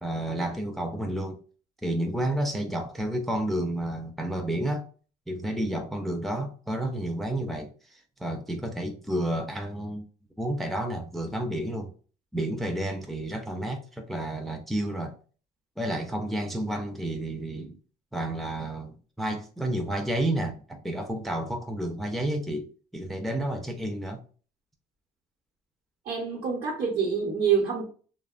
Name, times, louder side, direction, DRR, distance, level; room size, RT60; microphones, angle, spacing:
voice 1, 0.0-1.4 1.8-4.9 5.3-10.0 10.4-11.9 12.3-15.2 15.8-17.8 18.1-24.2, right 1 dB, ahead, 0.4 m, -31 dB
voice 2, 26.0-27.8, right 6 dB, 65° right, 0.9 m, -26 dB
2.8 x 2.1 x 2.4 m
cardioid pair, 110°, 17 cm